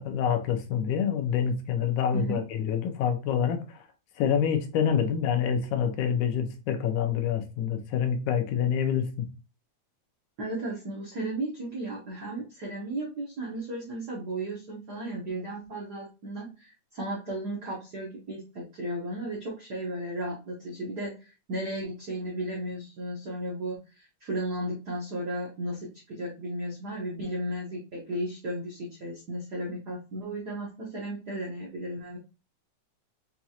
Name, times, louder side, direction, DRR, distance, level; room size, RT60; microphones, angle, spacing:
voice 1, 0.0-3.8 4.2-9.3, left 8 dB, 90° left, 2.1 m, -27 dB
voice 2, 10.4-32.2, right 1 dB, 80° right, 0.9 m, -35 dB
6.0 x 2.4 x 2.7 m
omnidirectional pair, 3.3 m